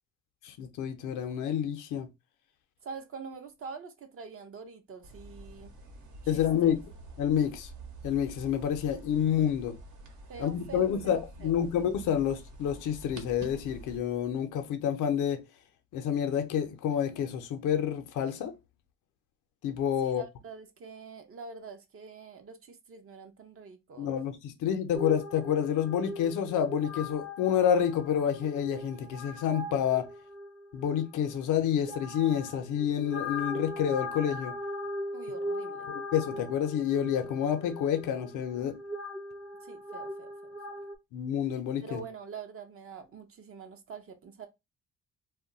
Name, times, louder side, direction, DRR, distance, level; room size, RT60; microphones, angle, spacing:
voice 1, 0.4-2.1 6.3-6.8 7.2-7.7 8.0-9.8 10.4-15.4 15.9-18.5 19.6-20.2 24.0-30.1 30.7-34.6 35.9-38.8 41.1-42.0, left 9 dB, 85° left, 0.6 m, -29 dB
voice 2, 2.8-5.7 6.3-6.7 10.3-11.5 20.0-24.1 35.1-35.9 39.6-40.5 41.8-44.5, right 5 dB, 45° right, 0.6 m, -45 dB
sound 1, 5.0-14.0, right 2 dB, 70° right, 0.9 m, -47 dB
sound 2, 24.9-41.0, left 1 dB, 10° right, 0.5 m, -40 dB
2.2 x 2.2 x 3.8 m
cardioid pair, 90°, 30 cm